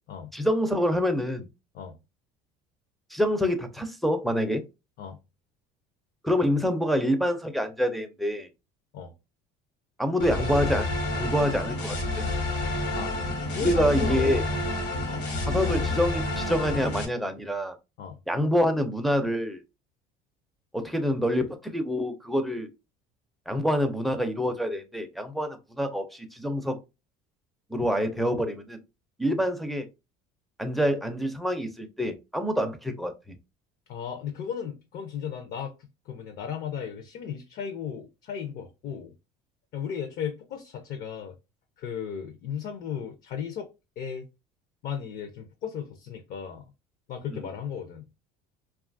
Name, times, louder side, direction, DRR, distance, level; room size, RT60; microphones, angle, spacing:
voice 1, 0.3-1.5 3.1-4.6 6.2-8.5 10.0-10.9 11.2-12.2 13.6-14.4 15.5-17.7 18.3-19.6 20.7-22.7 23.5-26.8 27.7-28.8 29.2-29.9 30.6-33.3 47.3-47.5, equal, ahead, 0.4 m, -26 dB
sound 1, 10.2-17.0, left 2 dB, 75° left, 1.1 m, -29 dB
voice 2, 13.5-14.5 15.0-15.3 18.0-18.2 33.9-35.7 36.1-39.1 39.7-41.4 41.8-43.7 44.0-44.3 44.8-46.6 47.1-48.1, left 8 dB, 55° left, 0.5 m, -35 dB
2.7 x 2.3 x 2.5 m
cardioid pair, 120°, 19 cm